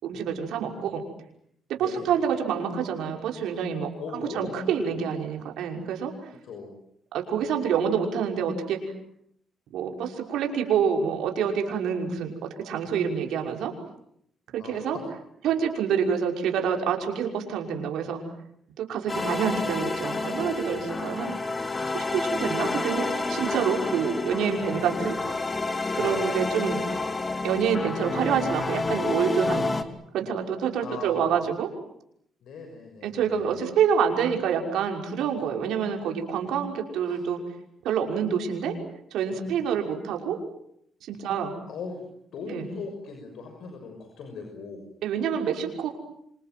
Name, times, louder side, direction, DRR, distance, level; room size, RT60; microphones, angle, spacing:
voice 1, 0.0-1.0 1.8-6.1 7.1-8.8 9.7-13.7 14.5-15.0 15.4-18.2 18.8-21.3 21.9-25.2 26.0-26.8 27.4-29.8 30.1-31.7 33.0-37.4 37.8-38.7 39.1-40.4 41.0-41.5 42.5-42.6 45.0-45.9, right 7 dB, 80° right, 3 dB, 5.9 m, -27 dB
voice 2, 4.0-5.0 6.4-6.7 14.6-15.0 19.1-19.6 26.0-26.3 30.8-31.4 32.4-33.6 37.0-37.2 41.7-42.0 42.3-44.8, left 4 dB, 70° left, 4 dB, 6.5 m, -39 dB
sound 1, 19.1-29.8, left 3 dB, 25° left, 2.7 m, -29 dB
27.5 x 26.5 x 7.8 m, 0.72 s
cardioid pair, 90°, 0 cm